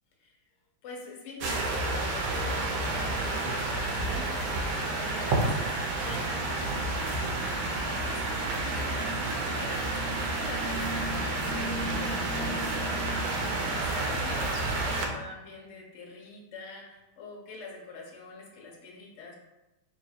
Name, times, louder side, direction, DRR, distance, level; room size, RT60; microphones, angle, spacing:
voice 1, 0.8-5.6 6.0-19.4, left 3 dB, 65° left, -1 dB, 0.7 m, -45 dB
sound 1, 1.4-15.1, right 2 dB, 85° right, 1.4 m, -30 dB
3.3 x 2.8 x 4.1 m, 1.0 s
omnidirectional pair, 2.2 m